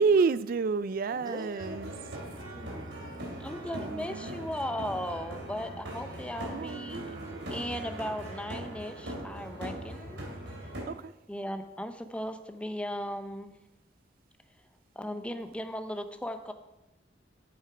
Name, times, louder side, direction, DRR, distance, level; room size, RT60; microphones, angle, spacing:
voice 1, 0.0-1.9 3.8-4.5 6.5-7.5 10.9-11.1, right 4 dB, 50° right, 0.3 m, -29 dB
voice 2, 1.1-3.2, equal, 25° right, 1.3 m, -45 dB
sound 1, 1.6-10.8, right 1 dB, 75° right, 3.3 m, -40 dB
voice 3, 3.4-7.0 7.5-10.2 11.3-13.5 15.0-16.5, equal, 5° left, 0.7 m, -37 dB
8.7 x 8.1 x 4.9 m
head